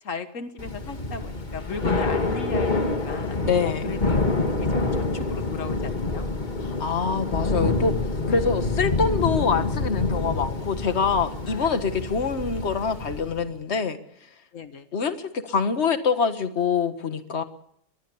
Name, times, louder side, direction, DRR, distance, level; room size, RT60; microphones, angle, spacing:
voice 1, 0.0-3.4 3.6-4.2 4.6-6.2 11.5-12.2 14.5-14.9, left 5 dB, 80° left, 9 dB, 1.7 m, -36 dB
Thunder / Rain, 0.6-13.5, left 3 dB, 35° left, 2.0 m, -27 dB
voice 2, 3.4-3.9 6.8-7.9 8.3-14.0 14.9-17.4, left 5 dB, 60° left, 9 dB, 1.8 m, -25 dB
21.5 x 21.0 x 7.1 m, 0.72 s
omnidirectional pair, 1.3 m